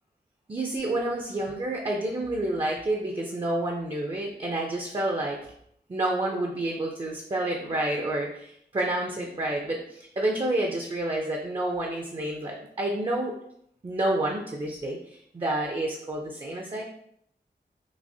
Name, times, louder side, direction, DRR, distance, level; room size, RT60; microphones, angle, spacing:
voice 1, 0.5-5.4 5.9-13.3 13.8-16.8, right 1 dB, 30° right, 0 dB, 0.5 m, -29 dB
5.9 x 2.0 x 2.7 m, 0.71 s
wide cardioid pair, 100°, 18 cm